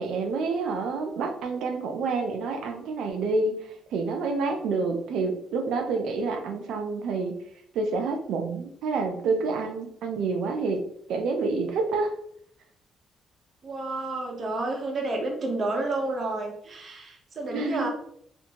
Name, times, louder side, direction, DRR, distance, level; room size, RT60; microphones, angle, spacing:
voice 1, 0.0-7.3 7.7-10.8 11.1-12.1 17.5-17.9, right 4 dB, 80° right, 5 dB, 0.5 m, -28 dB
voice 2, 13.6-17.9, right 2 dB, 50° right, 1 dB, 0.8 m, -30 dB
2.6 x 2.5 x 2.8 m, 0.68 s
cardioid pair, 90°, 0 cm